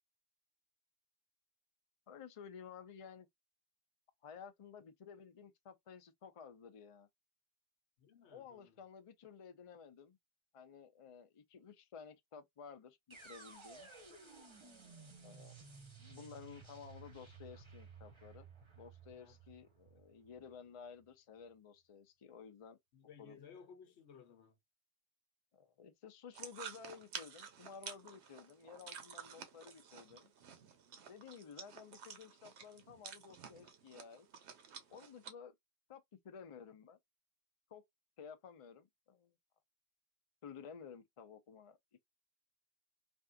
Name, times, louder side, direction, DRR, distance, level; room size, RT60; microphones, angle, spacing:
voice 1, 2.1-3.3 4.2-7.1 8.3-10.2 10.5-13.9 15.2-15.6 16.0-18.5 18.8-22.8 23.2-23.4 25.5-30.3 31.1-34.3 34.9-35.5 35.9-37.0 37.7-37.8 38.2-39.3 40.4-41.8, left 6 dB, 40° left, 0.5 m, -54 dB
voice 2, 8.0-8.8 19.2-19.4 22.9-24.6, left 6 dB, 80° left, 1.0 m, -58 dB
sound 1, 13.1-21.1, right 4 dB, 30° right, 0.8 m, -56 dB
sound 2, 26.3-35.3, right 7 dB, 80° right, 1.0 m, -51 dB
3.5 x 2.4 x 2.4 m
omnidirectional pair, 1.1 m